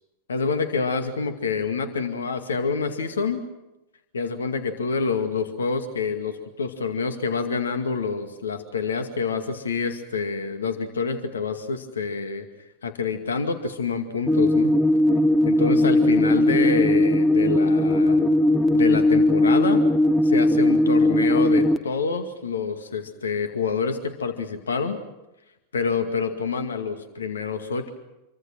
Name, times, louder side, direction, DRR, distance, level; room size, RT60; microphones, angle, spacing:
voice 1, 0.3-3.5 4.1-12.5 12.8-14.7 15.5-18.3 18.7-19.8 20.2-25.0 25.7-27.9, left 5 dB, 70° left, 8 dB, 2.2 m, -27 dB
sound 1, 14.3-21.8, left 1 dB, 5° left, 1.0 m, -19 dB
28.0 x 24.0 x 6.2 m, 0.95 s
figure-of-eight pair, 90°, 0 cm